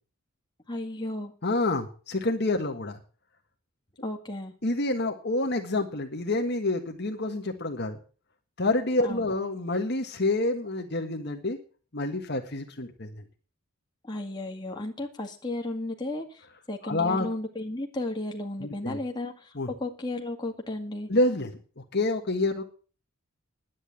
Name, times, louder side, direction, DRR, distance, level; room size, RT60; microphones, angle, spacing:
voice 1, 0.7-1.3 4.0-4.5 9.0-9.2 14.0-21.1, left 2 dB, 20° left, 1 dB, 2.0 m, -34 dB
voice 2, 1.4-3.0 4.6-8.0 8.6-11.6 11.9-13.2 16.8-17.3 18.6-19.0 19.5-19.7 21.1-22.6, left 2 dB, 50° left, 3 dB, 1.5 m, -28 dB
10.5 x 9.6 x 8.3 m, 0.40 s
head